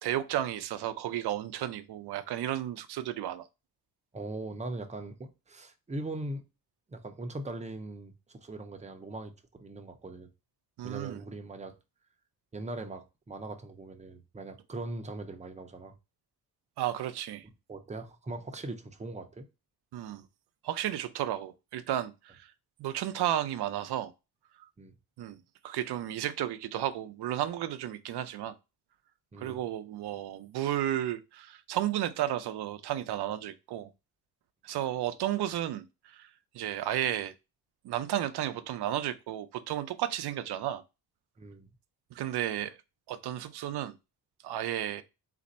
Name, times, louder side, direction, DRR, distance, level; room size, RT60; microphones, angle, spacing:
voice 1, 0.0-3.5 10.8-11.2 16.8-17.4 19.9-20.2 20.6-22.5 22.8-24.1 25.2-25.4 25.6-28.5 29.4-33.9 34.6-36.3 36.5-37.3 37.8-40.8 42.1-42.8 43.1-43.9 44.4-45.0, right 12 dB, 80° right, 0.5 m, -33 dB
voice 2, 4.1-6.4 6.9-10.3 10.8-11.8 12.5-15.9 17.7-19.5 24.8-24.9 29.3-29.6 41.4-41.7, right 2 dB, 20° right, 0.6 m, -40 dB
4.1 x 2.5 x 4.1 m
wide cardioid pair, 125°, 39 cm